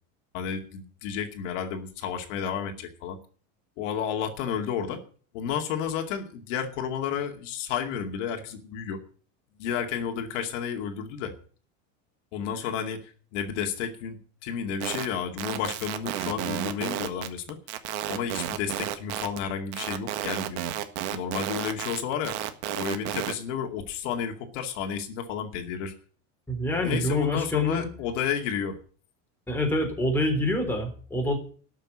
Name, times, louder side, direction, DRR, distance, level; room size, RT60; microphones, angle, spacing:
voice 1, 0.3-3.2 3.8-5.0 5.3-9.0 9.6-11.3 12.3-17.6 18.1-20.6 21.1-22.4 22.7-25.9 26.8-28.8, left 7 dB, 70° left, 5 dB, 2.4 m, -31 dB
sound 1, 14.8-15.1 15.4-19.4 19.7-23.3, right 13 dB, 65° right, 1.7 m, -32 dB
voice 2, 26.5-27.9 29.5-31.4, left 1 dB, 5° left, 2 dB, 3.7 m, -26 dB
12.5 x 6.6 x 9.8 m, 0.42 s
supercardioid pair, 155°, 37 cm